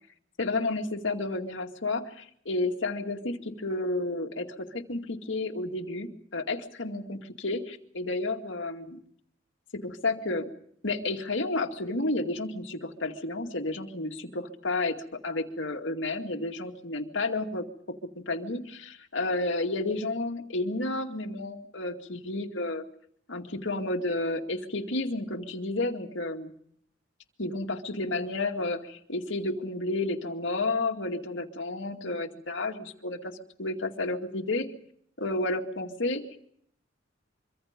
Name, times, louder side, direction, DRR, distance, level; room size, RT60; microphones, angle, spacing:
voice 1, 0.4-9.0 9.7-10.5 10.8-15.0 15.2-17.6 18.2-22.8 23.3-26.5 27.4-34.7 35.2-36.4, left 2 dB, 70° left, 3 dB, 2.3 m, -31 dB
25.0 x 25.0 x 5.2 m, 0.67 s
head